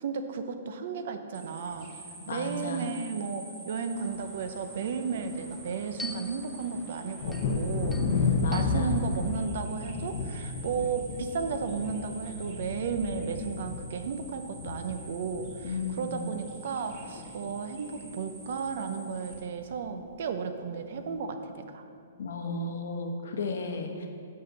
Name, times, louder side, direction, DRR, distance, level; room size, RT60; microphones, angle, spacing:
voice 1, 0.0-1.9 2.3-8.0 8.5-21.8, right 5 dB, 50° right, 7 dB, 0.7 m, -34 dB
sound 1, 1.3-19.3, right 3 dB, 35° right, 2.1 m, -48 dB
voice 2, 2.3-2.8 8.0-8.9 15.6-16.2 22.2-24.1, left 3 dB, 75° left, 4 dB, 1.0 m, -33 dB
sound 2, 3.9-9.5, left 2 dB, 5° left, 0.4 m, -47 dB
Thunder, 7.2-16.6 16.9-17.6 18.0-18.1 18.5-18.7, left 4 dB, 40° left, 0.7 m, -33 dB
7.8 x 5.5 x 6.6 m, 2.4 s
hypercardioid pair, 170°, 0 cm